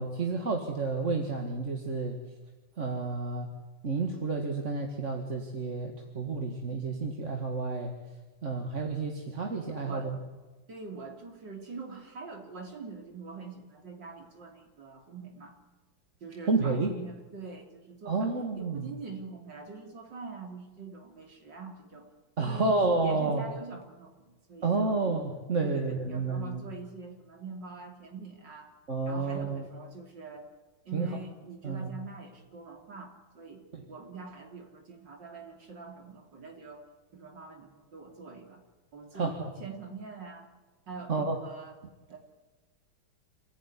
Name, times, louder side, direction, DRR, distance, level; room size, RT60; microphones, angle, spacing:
voice 1, 0.0-2.2 2.8-3.5 3.8-7.9 8.4-10.2 16.5-16.9 18.1-18.9 22.4-23.5 24.6-26.6 28.9-29.7 30.9-31.1 31.6-31.9 33.7-33.9 39.1-39.5 41.1-41.4, right 3 dB, 40° right, 3 dB, 2.1 m, -30 dB
voice 2, 9.7-10.2 10.7-15.6 16.2-22.1 22.4-25.0 25.6-28.7 29.1-30.5 30.9-36.8 37.1-38.6 38.9-40.5 40.9-41.7 42.1-42.2, right 4 dB, 65° right, 3 dB, 3.8 m, -44 dB
27.0 x 16.0 x 9.9 m, 1.3 s
omnidirectional pair, 2.1 m